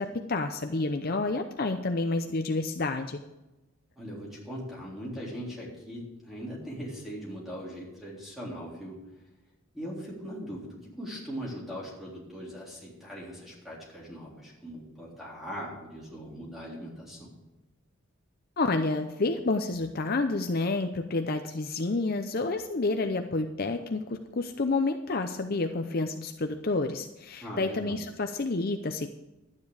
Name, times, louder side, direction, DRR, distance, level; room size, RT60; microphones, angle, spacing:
voice 1, 0.0-3.2 18.6-29.1, left 3 dB, 45° left, 6 dB, 0.6 m, -29 dB
voice 2, 4.0-9.0 9.7-17.3 27.4-28.0, equal, ahead, -5 dB, 3.7 m, -40 dB
11.5 x 9.6 x 4.9 m, 1.0 s
head